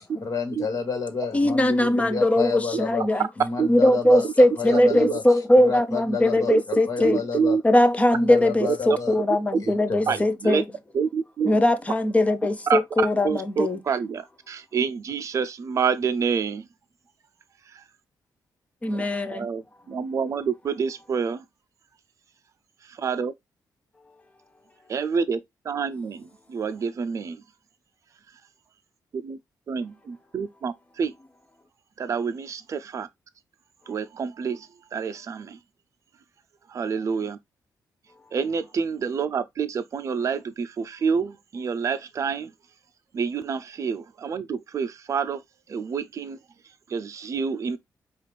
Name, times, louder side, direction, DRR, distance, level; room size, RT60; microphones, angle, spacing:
voice 1, 0.1-3.1 3.4-5.2 5.5-6.5 6.9-7.6 8.1-9.1 9.6-10.2, left 5 dB, 45° left, 1.5 m, -30 dB
voice 2, 1.3-3.3 3.7-7.2 7.6-10.6 11.5-13.8 18.8-19.5, left 1 dB, 20° left, 0.6 m, -20 dB
voice 3, 4.7-5.1 6.5-7.6 8.9-9.0 10.1-10.6 10.9-11.5 12.7-16.6 18.9-19.0 19.3-19.6 19.9-21.4 23.0-23.3 24.9-27.4 29.1-29.4 29.7-31.1 32.0-33.1 33.9-35.6 36.7-37.4 38.3-42.5 43.1-45.4 45.7-46.4 46.9-47.8, right 6 dB, 45° right, 0.4 m, -27 dB
4.9 x 2.4 x 3.3 m
wide cardioid pair, 130°, 7 cm